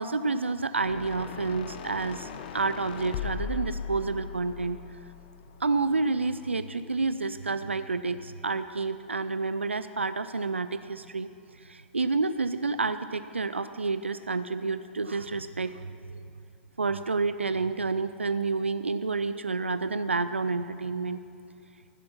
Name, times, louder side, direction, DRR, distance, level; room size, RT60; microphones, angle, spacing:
voice 1, 0.0-4.8 5.6-11.3 11.6-16.2 16.8-21.2, right 3 dB, 85° right, 12 dB, 0.4 m, -29 dB
sound 1, 0.8-6.1, left 6 dB, 50° left, 0.8 m, -38 dB
15.0 x 8.4 x 6.0 m, 2.6 s
figure-of-eight pair, 105°, 6 cm